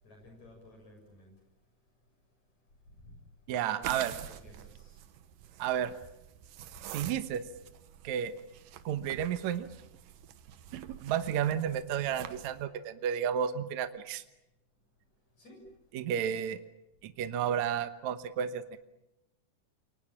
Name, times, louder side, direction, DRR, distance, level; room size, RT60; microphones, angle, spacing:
voice 1, 0.0-1.3 3.6-5.0 15.4-15.7, left 2 dB, 60° left, 2 dB, 8.4 m, -54 dB
voice 2, 3.5-4.1 5.6-5.9 6.9-7.4 8.0-8.3 8.9-9.7 10.7-14.2 15.9-16.6 17.0-18.8, right 9 dB, 70° right, 10 dB, 2.4 m, -32 dB
sound 1, 3.8-12.6, right 10 dB, 90° right, 2.9 m, -47 dB
28.5 x 24.0 x 7.4 m, 0.94 s
omnidirectional pair, 3.7 m